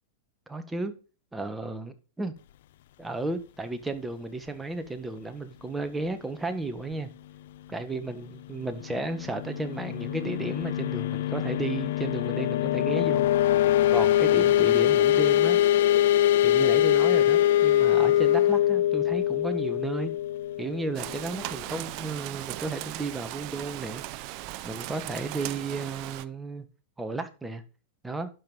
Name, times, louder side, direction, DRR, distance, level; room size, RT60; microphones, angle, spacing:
voice 1, 0.5-0.9 1.3-2.3 3.0-7.1 7.7-13.3 13.6-15.6 16.4-20.1 20.6-24.0 24.6-26.7 27.0-27.6 28.0-28.3, right 3 dB, 10° right, 1.5 m, -33 dB
sound 1, 8.9-21.4, left 12 dB, 65° left, 0.4 m, -23 dB
Rain, 20.9-26.2, right 16 dB, 50° right, 0.6 m, -38 dB
11.5 x 5.4 x 5.5 m
hypercardioid pair, 115°, 0 cm